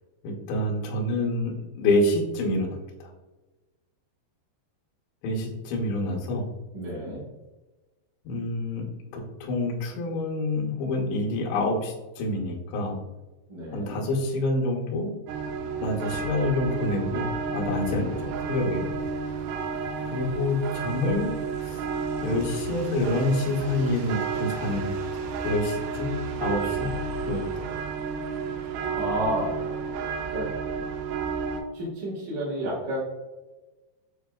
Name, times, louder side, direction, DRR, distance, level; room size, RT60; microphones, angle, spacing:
voice 1, 0.2-3.1 5.2-6.5 8.3-8.9 9.1-13.0 13.7-15.2 15.8-18.8 20.1-21.3 21.6-21.8 22.2-24.9 25.4-27.7, left 2 dB, 80° left, -1 dB, 2.9 m, -27 dB
voice 2, 6.7-7.2 13.5-14.0 28.9-29.5 30.3-30.5 31.7-33.0, right 1 dB, 65° right, -10 dB, 1.9 m, -30 dB
sound 1, 15.3-31.6, right 5 dB, 85° right, 2.7 m, -31 dB
7.3 x 2.4 x 2.3 m, 1.1 s
omnidirectional pair, 5.0 m